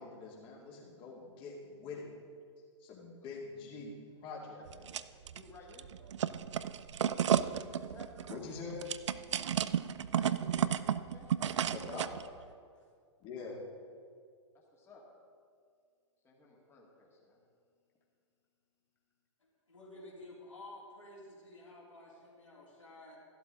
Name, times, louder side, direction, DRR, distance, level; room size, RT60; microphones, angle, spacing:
voice 1, 0.0-2.1 2.8-3.9 4.2-4.9 8.3-8.8 11.7-12.1 13.2-13.6, left 4 dB, 35° left, -3 dB, 2.4 m, -44 dB
sound 1, 4.7-5.4 5.7-12.2, right 9 dB, 70° right, 0.4 m, -33 dB
voice 2, 5.1-5.9 7.7-8.1 10.1-11.3 13.4-13.6 14.5-15.0 16.2-17.4, left 3 dB, 15° left, -3 dB, 2.0 m, -56 dB
voice 3, 19.7-23.2, left 2 dB, 90° left, -5 dB, 3.5 m, -52 dB
14.0 x 11.5 x 3.8 m, 2.2 s
figure-of-eight pair, 110°, 16 cm